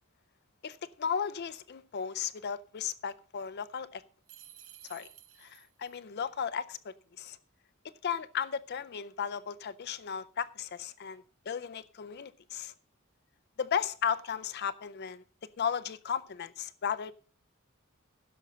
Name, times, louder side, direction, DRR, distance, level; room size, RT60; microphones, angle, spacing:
voice 1, 0.6-4.0 4.8-5.1 5.4-7.4 8.0-12.7 13.6-15.2 15.6-17.1, left 7 dB, 50° left, 0.5 m, -35 dB
sound 1, 4.3-6.0, right 11 dB, 80° right, 1.0 m, -53 dB
15.5 x 6.8 x 5.1 m
head